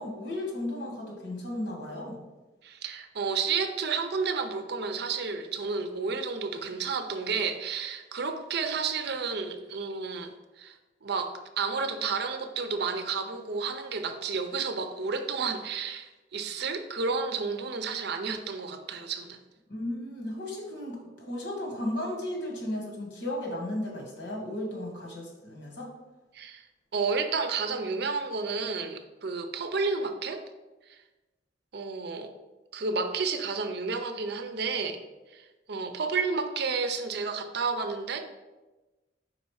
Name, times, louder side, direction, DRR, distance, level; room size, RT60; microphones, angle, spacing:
voice 1, 0.0-2.2 19.7-25.9, left 1 dB, 70° left, 0 dB, 1.6 m, -35 dB
voice 2, 2.6-10.3 10.6-10.7 11.0-19.4 26.3-26.6 26.9-30.4 30.9-31.0 31.7-32.3 32.7-35.0 35.3-38.2, right 4 dB, 60° right, 7 dB, 0.6 m, -31 dB
5.0 x 4.1 x 4.7 m, 1.1 s
head